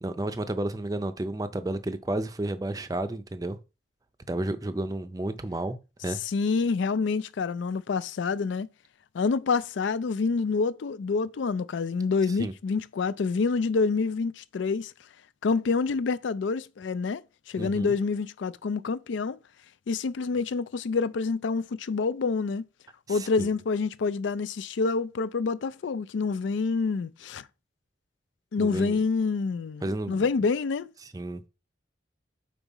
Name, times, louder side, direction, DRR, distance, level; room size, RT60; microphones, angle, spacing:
voice 1, 0.0-3.6 4.3-5.8 6.0-6.2 12.4-12.5 17.6-17.9 23.1-23.5 28.6-29.0 29.8-30.3 31.1-31.5, right 1 dB, 20° right, 0.5 m, -31 dB
voice 2, 6.2-8.7 9.1-14.9 15.4-17.2 17.5-19.4 19.9-22.6 23.1-27.5 28.5-30.9, left 4 dB, 75° left, 0.4 m, -27 dB
5.3 x 4.7 x 4.1 m
head